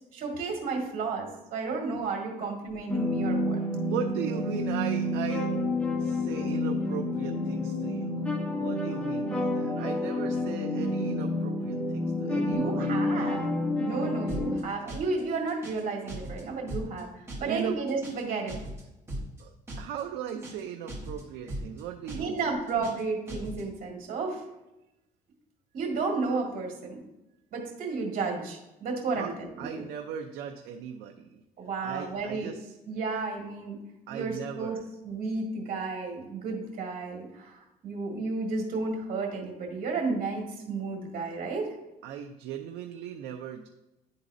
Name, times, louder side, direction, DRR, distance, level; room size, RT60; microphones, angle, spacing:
voice 1, 0.1-3.6 12.4-13.4 13.8-18.6 22.1-24.4 25.7-27.0 27.5-29.8 31.6-32.5 32.9-33.8 34.1-34.8 35.0-41.7, right 4 dB, 55° right, 0 dB, 1.8 m, -32 dB
sound 1, 2.9-14.6, left 1 dB, 5° left, 0.8 m, -29 dB
voice 2, 3.8-5.5 6.0-8.3 8.6-13.4 17.4-17.8 19.4-22.5 29.1-29.3 29.6-31.4 31.8-32.8 34.1-34.8 42.0-43.7, right 8 dB, 85° right, 3 dB, 0.5 m, -38 dB
sound 2, 14.3-14.6 14.9-15.2 15.5-15.8 16.1-16.4 16.7-17.0 17.3-17.6 17.9-18.2 18.5-18.8 19.1-19.4 19.7-20.0 20.3-20.6 20.9-21.2 21.5-21.8 22.1-22.4 22.7-23.0 23.3-23.6, right 1 dB, 15° right, 2.4 m, -38 dB
10.5 x 4.0 x 2.6 m, 0.94 s
cardioid pair, 110°, 17 cm